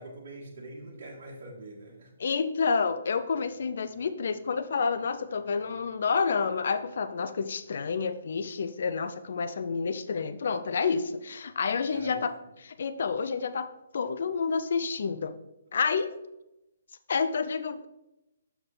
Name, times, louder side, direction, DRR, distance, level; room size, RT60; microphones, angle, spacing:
voice 1, 0.0-2.1 11.9-12.2, right 2 dB, 55° right, -3 dB, 1.6 m, -44 dB
voice 2, 2.2-12.3 12.6-13.7 13.9-15.3 15.7-16.1 17.1-17.9, left 5 dB, 60° left, 11 dB, 0.5 m, -29 dB
7.0 x 5.8 x 3.8 m, 0.91 s
figure-of-eight pair, 140°, 0 cm